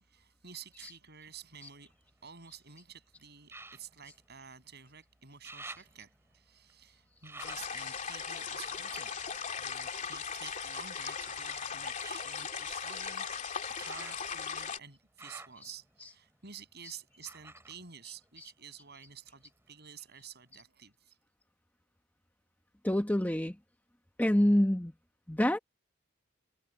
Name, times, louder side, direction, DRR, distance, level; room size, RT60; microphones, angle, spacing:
voice 1, 0.0-1.9 2.2-9.1 9.6-21.2, right 7 dB, 55° right, 7.7 m, -51 dB
sound 1, 1.3-2.6 3.4-5.0 5.2-10.4 11.0-18.9 19.2-20.0 20.5-20.6, right 2 dB, 15° right, 4.8 m, -53 dB
sound 2, 7.4-14.8, left 6 dB, 40° left, 2.9 m, -38 dB
voice 2, 22.8-23.6 24.2-24.9 25.3-25.6, left 1 dB, 10° left, 1.1 m, -26 dB
head